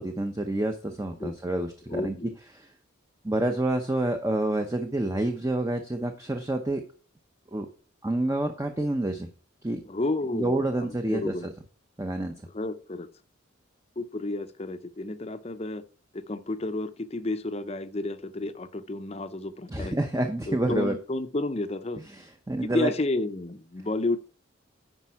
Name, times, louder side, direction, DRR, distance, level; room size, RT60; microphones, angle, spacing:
voice 1, 0.0-2.2 2.5-2.7 3.2-6.8 7.5-7.7 8.0-9.3 9.6-9.8 10.3-11.5 12.0-12.3 19.7-21.0 22.1-22.9, right 1 dB, 15° right, 5 dB, 0.7 m, -28 dB
voice 2, 1.9-2.3 9.9-11.5 12.5-13.1 14.0-15.8 16.1-20.0 20.5-22.0 22.6-24.2, left 2 dB, 30° left, 11 dB, 0.6 m, -31 dB
10.0 x 5.3 x 4.7 m, 0.39 s
head